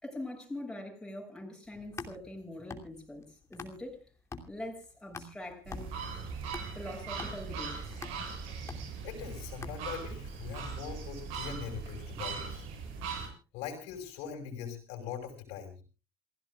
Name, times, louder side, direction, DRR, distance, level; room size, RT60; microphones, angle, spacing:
voice 1, 0.0-4.1 4.5-5.9 6.7-8.0 8.4-8.5, left 1 dB, 5° left, 0 dB, 6.8 m, -43 dB
sound 1, 1.7-4.0 4.3-10.2, left 4 dB, 25° left, 2.9 m, -46 dB
sound 2, 5.7-13.3, right 5 dB, 85° right, 7.3 m, -40 dB
voice 2, 9.0-12.6 13.5-15.8, left 7 dB, 85° left, 5 dB, 5.6 m, -41 dB
28.5 x 16.0 x 2.4 m, 0.33 s
cardioid pair, 115°, 11 cm